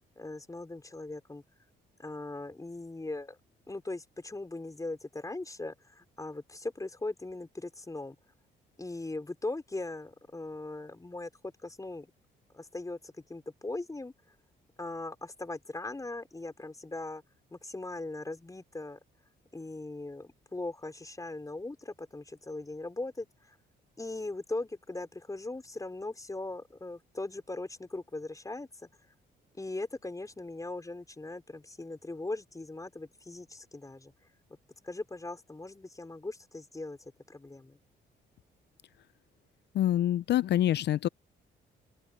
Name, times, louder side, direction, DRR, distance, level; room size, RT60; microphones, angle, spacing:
voice 1, 0.2-1.4 2.0-3.4 3.7-8.2 8.8-12.1 12.5-14.1 14.8-17.2 17.5-19.0 19.5-23.6 24.0-28.9 29.6-34.1 34.8-37.8, left 2 dB, 15° left, 4.8 m, -39 dB
voice 2, 39.7-41.1, left 12 dB, 60° left, 0.4 m, -26 dB
open air
cardioid pair, 90°, 20 cm